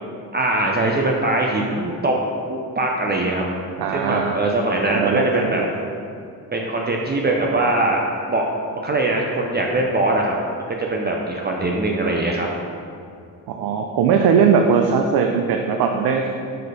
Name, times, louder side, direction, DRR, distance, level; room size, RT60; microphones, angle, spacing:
voice 1, 0.3-2.2 2.5-3.5 3.9-5.6 6.5-8.0 8.3-8.4 8.7-10.4 10.7-12.5, right 2 dB, 30° right, 0 dB, 0.6 m, -21 dB
voice 2, 3.8-4.4 4.9-5.7 13.5-16.3, right 6 dB, 85° right, 3 dB, 0.5 m, -19 dB
6.6 x 4.3 x 4.9 m, 2.5 s
cardioid pair, 105°, 36 cm